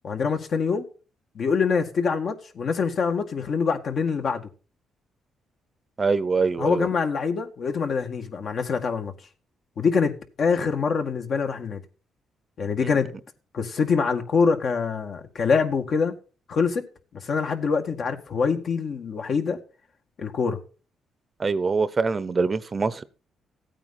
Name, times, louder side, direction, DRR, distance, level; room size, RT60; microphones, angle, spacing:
voice 1, 0.0-0.8 1.4-4.5 6.6-9.1 9.8-11.8 12.6-13.1 13.5-16.2 16.5-16.9 17.2-19.6 20.2-20.6, left 5 dB, 55° left, 2.0 m, -25 dB
voice 2, 6.0-6.9 12.8-12.9 21.4-23.0, right 4 dB, 30° right, 0.8 m, -24 dB
15.5 x 9.0 x 4.3 m
cardioid pair, 90°, 0 cm